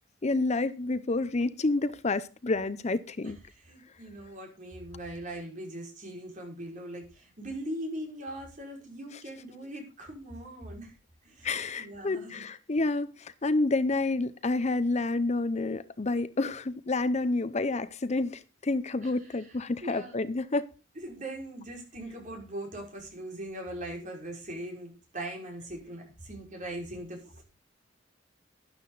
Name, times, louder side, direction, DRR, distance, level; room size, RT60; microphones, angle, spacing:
voice 1, 0.2-3.4 11.4-20.7, left 2 dB, 35° left, 0.7 m, -29 dB
voice 2, 3.2-10.9 11.2-11.5 11.8-12.4 19.0-20.1 21.0-27.4, right 1 dB, 45° right, 5.5 m, -40 dB
12.5 x 11.0 x 4.0 m
head